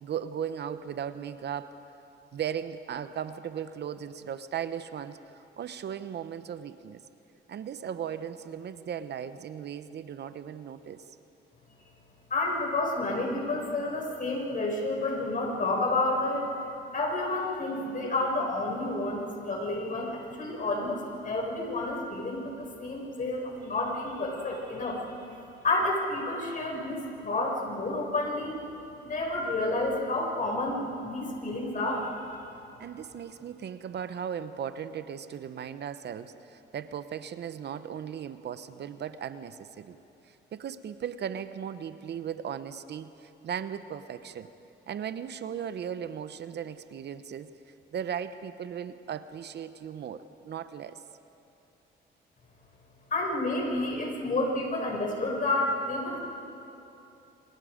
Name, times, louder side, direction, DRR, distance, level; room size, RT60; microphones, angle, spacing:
voice 1, 0.0-1.8 2.3-7.0 7.5-11.0 32.8-40.0 40.3-44.5 44.9-47.5 47.9-51.0, right 8 dB, 60° right, 12 dB, 0.9 m, -37 dB
voice 2, 12.3-16.5 16.9-25.3 25.6-28.6 29.0-32.4 53.1-56.2, left 2 dB, 45° left, -1 dB, 6.1 m, -30 dB
27.5 x 26.0 x 5.1 m, 2.9 s
cardioid pair, 90°, 20 cm